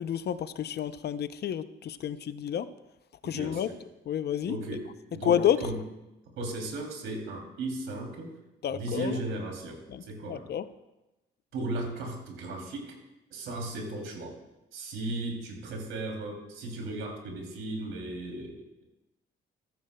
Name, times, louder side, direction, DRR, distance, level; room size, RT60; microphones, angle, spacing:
voice 1, 0.0-2.6 3.2-3.7 4.1-4.6 5.2-5.6 8.6-9.2 9.9-10.0 10.3-10.6, left 9 dB, 55° left, 13 dB, 0.6 m, -29 dB
voice 2, 3.2-3.8 4.5-5.8 6.4-8.3 8.7-10.5 11.5-13.0 13.3-14.3 14.7-18.8, right 2 dB, 85° right, 1 dB, 3.0 m, -36 dB
14.5 x 14.0 x 2.3 m, 0.98 s
cardioid pair, 90°, 20 cm